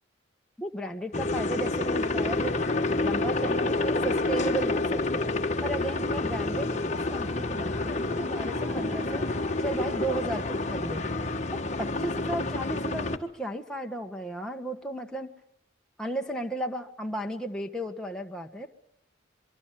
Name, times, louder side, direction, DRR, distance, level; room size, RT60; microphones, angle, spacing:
voice 1, 0.6-2.6 2.9-5.3 5.6-9.2 9.6-11.0 11.5-15.3 16.0-18.7, right 1 dB, 5° left, 2 dB, 1.6 m, -34 dB
sound 1, 1.1-13.2, left 2 dB, 35° left, 1.4 m, -28 dB
Dog, 5.7-10.8, right 2 dB, 35° right, 7.3 m, -50 dB
24.5 x 24.0 x 7.7 m, 0.71 s
head